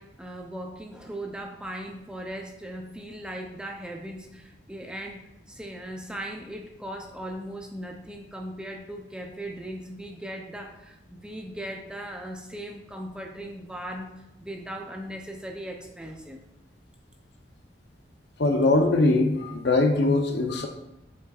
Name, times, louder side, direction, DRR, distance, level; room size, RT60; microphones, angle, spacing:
voice 1, 0.0-14.1 14.4-16.4, right 1 dB, 5° right, 1 dB, 0.6 m, -38 dB
voice 2, 18.4-20.7, left 2 dB, 65° left, 5 dB, 0.7 m, -21 dB
7.8 x 5.6 x 2.4 m, 0.84 s
head